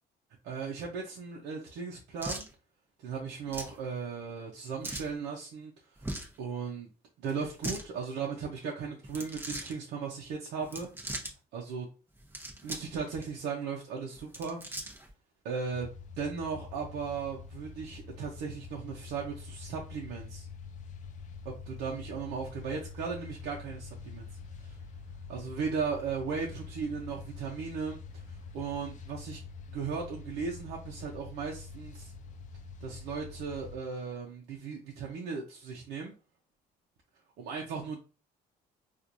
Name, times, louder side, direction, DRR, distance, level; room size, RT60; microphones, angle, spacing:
voice 1, 0.4-2.5 3.0-6.1 6.4-6.9 7.2-10.9 11.5-11.9 12.6-14.6 15.4-15.9 16.2-20.5 21.4-24.3 24.6-24.8 25.3-29.4 29.7-32.1 32.8-36.1 37.4-38.0, right 5 dB, 80° right, 0.8 m, -37 dB
sound 1, 2.2-2.5 3.5-3.8 4.8-5.1 6.0-6.4 7.4-7.8 9.0-9.7 10.6-11.3 12.2-12.9 13.2-13.3 14.2-15.1, right 1 dB, 15° right, 0.9 m, -39 dB
sound 2, 15.7-33.8, left 4 dB, 50° left, 0.5 m, -46 dB
4.4 x 2.5 x 2.6 m
cardioid pair, 110°, 17 cm